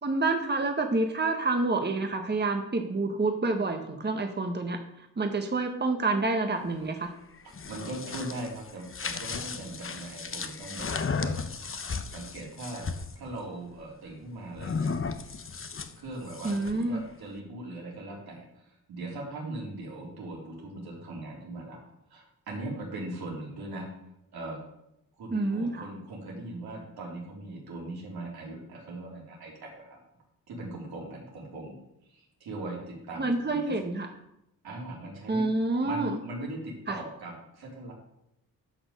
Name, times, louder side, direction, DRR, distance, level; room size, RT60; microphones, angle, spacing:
voice 1, 0.0-7.1 16.4-17.0 25.3-25.9 33.2-34.1 35.3-36.2 36.9-37.0, right 3 dB, 30° right, 4 dB, 1.5 m, -28 dB
sound 1, 7.4-13.1 14.6-16.8, left 5 dB, 35° left, 1.0 m, -35 dB
voice 2, 7.7-11.8 12.1-14.9 16.0-21.8 22.1-23.9 24.3-24.6 25.1-30.0 30.5-31.8 32.1-33.7 34.6-35.4 35.8-37.9, right 2 dB, 85° right, -3 dB, 3.9 m, -40 dB
10.5 x 6.2 x 6.7 m, 0.83 s
cardioid pair, 60°, 36 cm